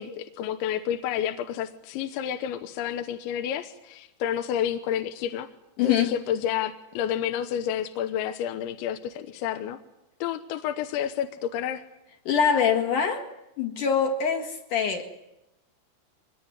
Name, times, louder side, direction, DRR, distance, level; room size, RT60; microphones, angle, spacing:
voice 1, 0.0-5.5 5.8-9.8 10.2-11.9, left 9 dB, 75° left, 7 dB, 3.1 m, -30 dB
voice 2, 5.8-6.1 12.3-13.2 13.6-15.1, left 7 dB, 55° left, 3 dB, 2.6 m, -24 dB
24.0 x 21.0 x 9.6 m, 0.92 s
omnidirectional pair, 5.9 m